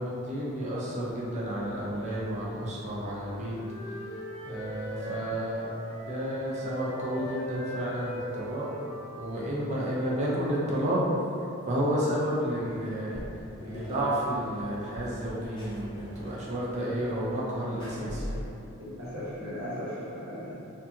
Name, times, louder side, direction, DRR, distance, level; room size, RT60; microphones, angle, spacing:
voice 1, 0.0-3.5 4.4-5.7 6.1-8.7 9.2-11.0 11.7-13.2 13.6-18.3, equal, 30° right, -6 dB, 0.5 m, -31 dB
Wind instrument woodwind instrument, 2.6-6.2 6.4-10.3, equal, 80° left, 0.7 m, -41 dB
sound 1, 12.6-18.4, equal, 20° left, 0.4 m, -42 dB
voice 2, 18.8-20.5, equal, 70° right, -9 dB, 0.9 m, -37 dB
2.6 x 2.3 x 2.6 m, 2.7 s
head